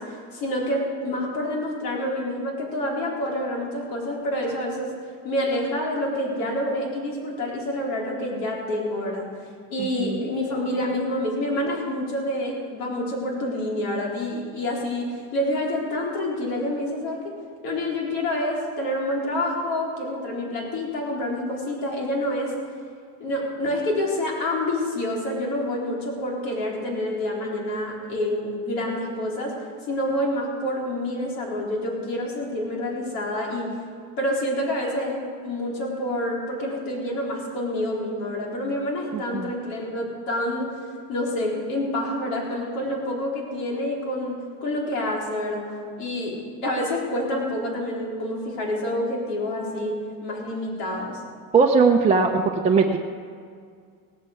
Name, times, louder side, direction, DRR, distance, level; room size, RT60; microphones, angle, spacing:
voice 1, 0.0-4.9 5.2-9.2 9.7-17.3 17.6-22.5 23.2-29.5 29.8-33.7 34.2-40.7 41.1-45.6 46.0-51.2, left 1 dB, 70° left, -1 dB, 4.2 m, -27 dB
voice 2, 9.8-10.2 39.1-39.5 51.5-53.0, right 4 dB, 20° right, -1 dB, 0.7 m, -20 dB
17.0 x 8.8 x 8.0 m, 2.1 s
cardioid pair, 150°, 37 cm